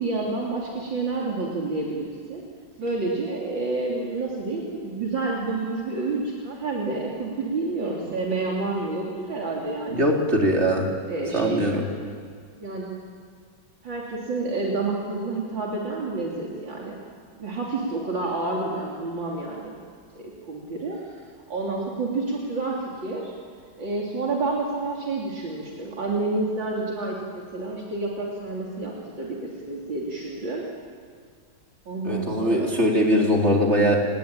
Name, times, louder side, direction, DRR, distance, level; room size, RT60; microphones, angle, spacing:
voice 1, 0.0-2.4 2.8-10.1 11.1-11.9 12.6-13.0 13.8-17.0 17.4-19.7 20.1-21.0 21.5-23.3 23.8-30.6 31.9-32.7, right 3 dB, 70° right, -3 dB, 3.8 m, -29 dB
voice 2, 9.9-10.9 11.3-11.9 32.1-34.0, equal, 30° right, 0 dB, 4.1 m, -21 dB
28.5 x 20.0 x 9.0 m, 2.1 s
omnidirectional pair, 2.2 m